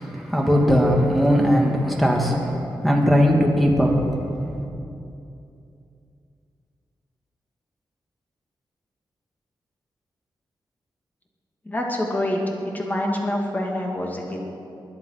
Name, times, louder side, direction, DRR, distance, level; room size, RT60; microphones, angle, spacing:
voice 1, 0.0-4.5, equal, ahead, 0 dB, 2.5 m, -19 dB
voice 2, 11.7-12.4 12.7-14.4, left 1 dB, 20° left, 0 dB, 2.6 m, -26 dB
21.0 x 11.0 x 6.0 m, 2.7 s
wide cardioid pair, 120°, 8 cm